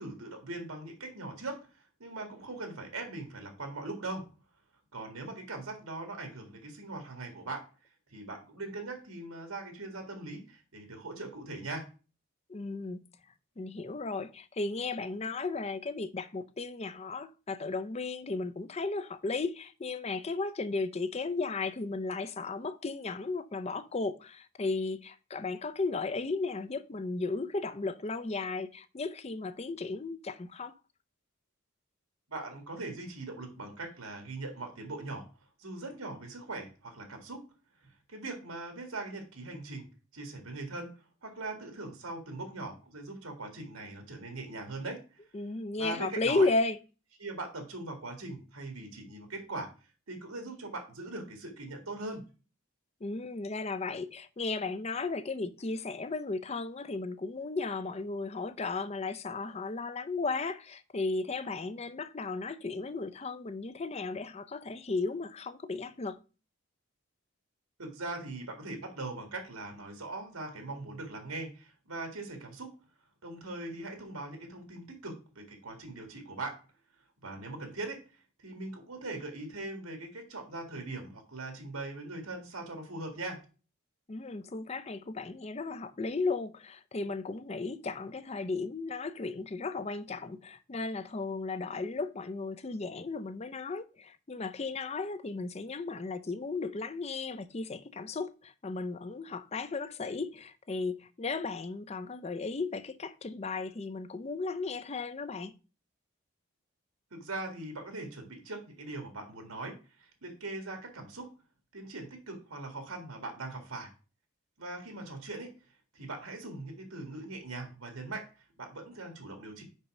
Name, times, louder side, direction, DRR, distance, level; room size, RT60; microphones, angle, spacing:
voice 1, 0.0-1.7 2.0-4.3 4.9-7.7 8.1-11.9 32.3-35.3 35.6-37.4 37.8-39.9 40.1-45.0 45.8-46.5 47.2-49.7 50.1-52.3 67.8-72.8 73.2-76.6 77.2-78.0 78.4-83.4 107.1-111.3 111.7-113.9 114.6-115.5 115.9-118.3 118.6-119.6, right 2 dB, 90° right, 1.9 m, -41 dB
voice 2, 12.5-13.0 13.6-30.7 45.3-46.8 53.0-66.2 84.1-105.5, left 3 dB, 30° left, 0.4 m, -35 dB
5.5 x 5.2 x 4.8 m
head